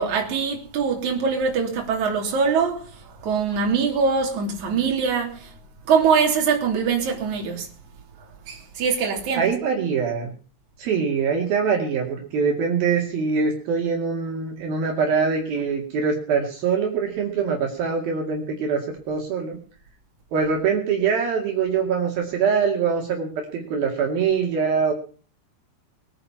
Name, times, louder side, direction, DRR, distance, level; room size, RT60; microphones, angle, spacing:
voice 1, 0.0-5.5 5.9-7.7 8.5-9.5, right 5 dB, 50° right, 4.3 m, -23 dB
voice 2, 9.3-10.3 10.8-19.6 20.3-24.9, right 6 dB, 65° right, 4.1 m, -23 dB
21.5 x 9.8 x 5.8 m
omnidirectional pair, 4.7 m